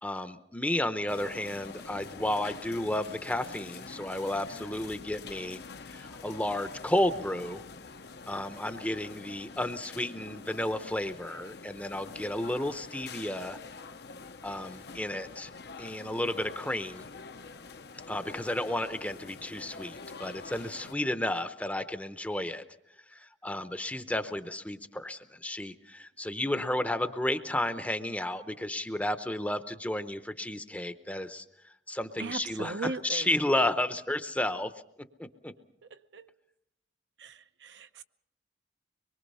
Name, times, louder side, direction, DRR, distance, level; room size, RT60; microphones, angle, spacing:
voice 1, 0.0-5.6 5.9-7.6 8.3-13.6 14.4-15.5 15.8-17.1 18.1-22.6 23.1-34.7 35.2-35.5, left 1 dB, 10° left, 10 dB, 0.7 m, -32 dB
sound 1, 1.1-20.9, left 4 dB, 60° left, 0.8 m, -46 dB
voice 2, 32.2-33.3 36.1-36.3 37.2-38.0, right 3 dB, 70° right, 9 dB, 0.8 m, -38 dB
24.5 x 22.5 x 5.5 m, 0.79 s
head